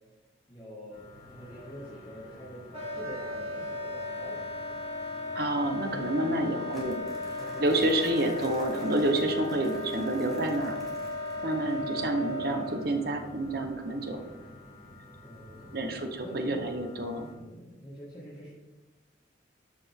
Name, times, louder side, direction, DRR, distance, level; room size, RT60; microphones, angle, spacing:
voice 1, 0.5-4.4 5.2-5.4 5.9-6.6 6.9-8.9 11.7-12.3 15.2-16.6 17.3-18.5, equal, 25° left, -7 dB, 1.8 m, -46 dB
sound 1, 0.9-17.3, left 1 dB, 50° left, 1.9 m, -51 dB
Wind instrument woodwind instrument, 2.7-12.8, left 2 dB, 30° right, 2.5 m, -36 dB
voice 2, 5.3-7.0 7.6-10.8 11.4-14.2 15.7-17.3, right 1 dB, 50° right, 5 dB, 1.0 m, -29 dB
Crumpling crinkling, 6.7-11.6, left 1 dB, ahead, 1.8 m, -51 dB
12.5 x 5.1 x 3.6 m, 1.1 s
head